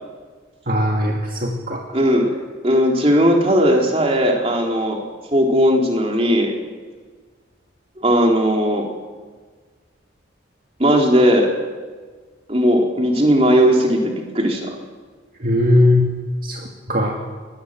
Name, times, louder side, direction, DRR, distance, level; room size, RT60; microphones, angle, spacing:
voice 1, 0.7-1.8 15.4-16.1 16.4-17.1, left 1 dB, 50° right, 0 dB, 2.3 m, -19 dB
voice 2, 1.9-2.3 2.6-5.0 5.3-6.5 8.0-8.9 10.8-11.5 12.5-14.7, equal, 30° right, 1 dB, 3.6 m, -17 dB
23.0 x 19.5 x 7.7 m, 1.5 s
head